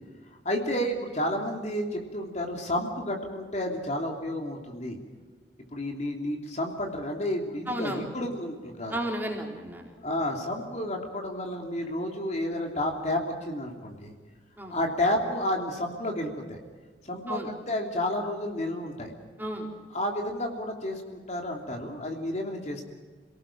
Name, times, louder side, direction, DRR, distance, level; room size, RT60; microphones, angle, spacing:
voice 1, 0.4-5.0 5.7-9.0 10.0-14.1 14.7-16.6 17.0-19.1 19.9-22.9, left 1 dB, 40° left, 2 dB, 3.1 m, -31 dB
voice 2, 7.7-8.1 8.9-9.9 14.6-14.7 17.3-17.5 19.4-19.7, right 1 dB, 10° right, 0 dB, 3.8 m, -33 dB
28.0 x 18.5 x 7.4 m, 1.4 s
head